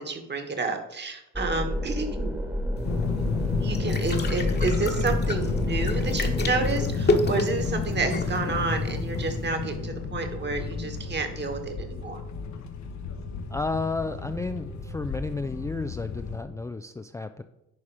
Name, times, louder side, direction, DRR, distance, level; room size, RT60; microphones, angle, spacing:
voice 1, 0.0-2.4 3.6-12.2, right 4 dB, 35° right, 6 dB, 1.6 m, -30 dB
sound 1, 1.3-6.8, left 1 dB, 5° right, 1.3 m, -30 dB
sound 2, 2.8-16.4, left 5 dB, 65° left, 1.1 m, -31 dB
sound 3, 2.8-9.5, left 2 dB, 35° left, 1.3 m, -30 dB
voice 2, 13.5-17.4, left 3 dB, 10° left, 8 dB, 0.3 m, -32 dB
11.0 x 4.2 x 4.9 m, 0.87 s
cardioid pair, 90°, 30 cm